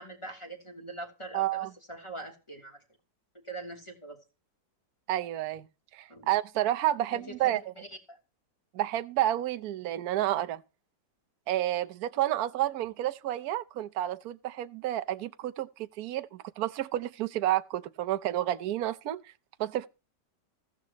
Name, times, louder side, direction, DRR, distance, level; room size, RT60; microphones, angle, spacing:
voice 1, 0.0-2.8 3.4-4.2 6.1-6.3 7.1-8.2, right 2 dB, 15° left, 3.0 m, -43 dB
voice 2, 1.3-1.7 5.1-5.7 5.9-7.6 8.7-10.6 11.5-19.2 19.6-19.9, right 13 dB, 65° right, 1.2 m, -30 dB
15.5 x 13.5 x 3.0 m
omnidirectional pair, 1.9 m